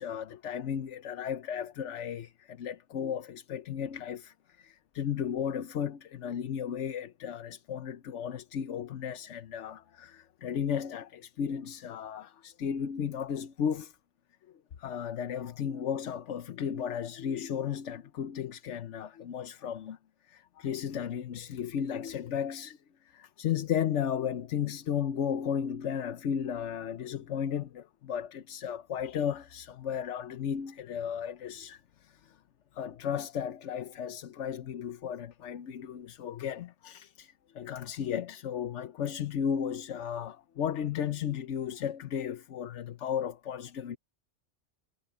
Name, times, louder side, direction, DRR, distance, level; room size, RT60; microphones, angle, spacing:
voice 1, 0.0-14.0 14.8-20.0 20.3-32.4 32.7-44.0, left 8 dB, 80° left, 1.1 m, -34 dB
omnidirectional pair, 1.2 m